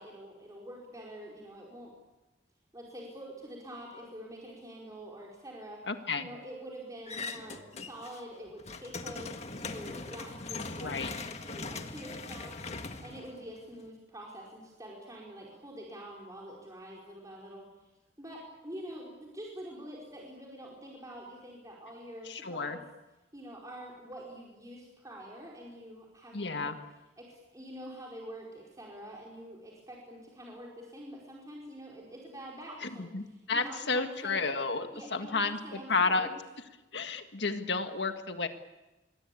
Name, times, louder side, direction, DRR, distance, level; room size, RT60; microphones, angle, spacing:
voice 1, 0.0-1.9 2.7-5.8 6.2-17.9 18.2-22.8 23.3-26.8 27.2-34.5 34.9-36.4, right 1 dB, 20° right, -3 dB, 4.7 m, -46 dB
voice 2, 5.9-6.3 10.8-11.1 22.2-22.8 26.3-26.7 32.8-36.3 36.9-38.5, left 4 dB, 70° left, 7 dB, 1.8 m, -32 dB
sound 1, 7.1-8.2 8.5-13.9, left 3 dB, 35° left, 1.7 m, -40 dB
26.5 x 22.5 x 8.5 m, 1.0 s
head